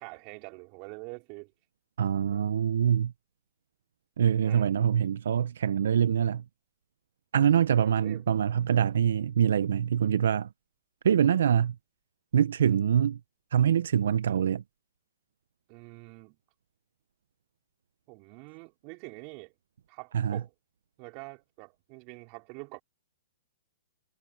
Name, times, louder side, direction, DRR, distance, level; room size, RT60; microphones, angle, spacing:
voice 1, 0.0-1.5 2.3-2.4 4.4-4.7 7.7-8.3 15.7-16.4 18.1-19.5 19.9-20.5 21.0-22.8, right 29 dB, 40° right, 4.3 m, -45 dB
voice 2, 2.0-3.1 4.2-6.4 7.3-10.5 11.0-11.7 12.3-13.2 13.5-14.6 20.1-20.4, right 8 dB, 75° right, 0.5 m, -24 dB
hypercardioid pair, 135°, 0 cm